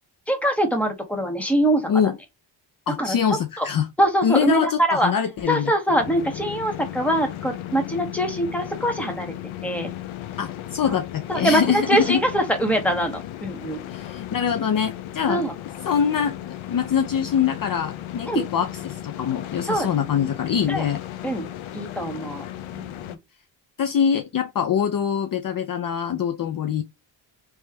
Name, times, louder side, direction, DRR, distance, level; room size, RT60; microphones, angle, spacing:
voice 1, 0.3-1.9 3.0-3.7 4.0-5.1 5.5-9.3 9.6-9.9 10.8-11.0 11.3-13.8 15.3-15.5 18.3-18.4 19.7-19.9 20.7-20.8 21.2-21.5 21.7-22.4 22.7-23.2, right 1 dB, 5° left, 1.4 m, -23 dB
voice 2, 2.9-3.9 4.2-5.7 10.4-12.2 13.9-15.4 15.8-21.0 23.8-26.8, left 8 dB, 45° left, 0.6 m, -24 dB
sound 1, 6.0-23.2, left 12 dB, 80° left, 0.8 m, -36 dB
3.2 x 3.2 x 3.2 m
cardioid pair, 80°, 48 cm